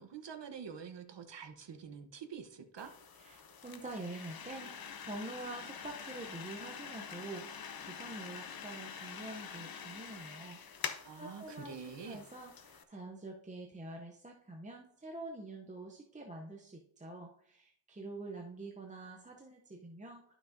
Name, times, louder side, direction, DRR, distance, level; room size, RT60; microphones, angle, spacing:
voice 1, 0.0-2.9 11.0-12.2, right 6 dB, 55° right, 6 dB, 0.9 m, -46 dB
sound 1, 2.8-12.8, left 7 dB, 45° left, 0.6 m, -46 dB
voice 2, 3.2-10.6 11.2-20.3, right 2 dB, 15° right, 0 dB, 0.5 m, -46 dB
11.5 x 6.0 x 2.6 m, 0.69 s
wide cardioid pair, 175°, 50 cm